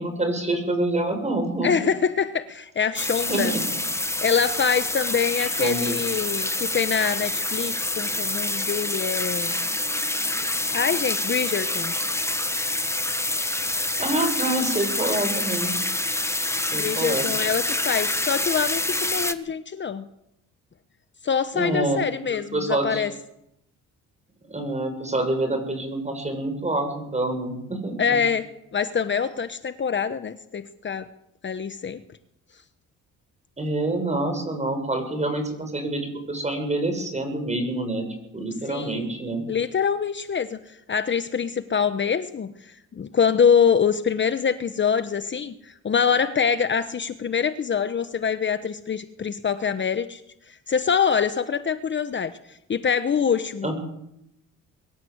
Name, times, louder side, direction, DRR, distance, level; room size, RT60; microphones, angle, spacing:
voice 1, 0.0-1.7 3.3-3.6 5.4-6.0 14.0-15.7 16.7-17.3 21.5-22.0 22.5-23.0 24.5-28.0 33.6-38.1 38.3-39.4 53.6-53.7, right 2 dB, 20° right, 6 dB, 7.0 m, -26 dB
voice 2, 1.6-3.5 4.2-9.6 10.7-11.9 16.7-20.0 21.2-23.1 28.0-31.1 31.4-32.0 38.4-39.1 39.5-50.2 50.5-53.7, left 6 dB, 35° left, 11 dB, 1.1 m, -25 dB
sound 1, 3.0-19.3, left 2 dB, 10° left, 1.4 m, -27 dB
23.0 x 16.5 x 8.1 m, 0.83 s
cardioid pair, 95°, 32 cm